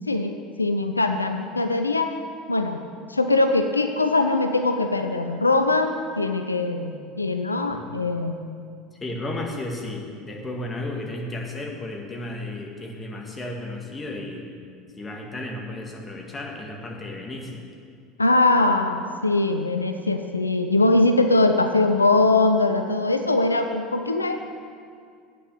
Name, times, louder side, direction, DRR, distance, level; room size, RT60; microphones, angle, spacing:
voice 1, 0.1-2.1 2.5-2.8 3.1-8.4 18.2-24.4, left 2 dB, 90° left, 7 dB, 0.4 m, -21 dB
voice 2, 8.9-14.5 15.0-17.6, left 1 dB, 20° left, -1 dB, 2.0 m, -33 dB
8.9 x 6.8 x 8.0 m, 2.2 s
figure-of-eight pair, 70°, 0 cm